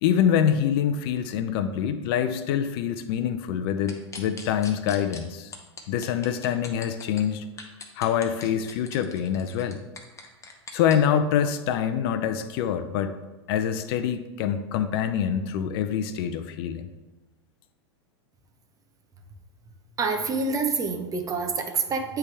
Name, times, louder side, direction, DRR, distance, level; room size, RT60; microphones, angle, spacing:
voice 1, 0.0-5.5 5.9-7.4 8.0-9.8 10.7-13.1 13.5-16.9, left 9 dB, 60° left, 10 dB, 0.5 m, -25 dB
sound 1, 3.9-5.2 5.5-7.2 7.6-10.9, left 4 dB, 20° left, 1.0 m, -41 dB
voice 2, 20.0-22.2, right 4 dB, 25° right, 5 dB, 0.8 m, -27 dB
9.7 x 3.4 x 3.4 m, 1.1 s
hypercardioid pair, 110°, 15 cm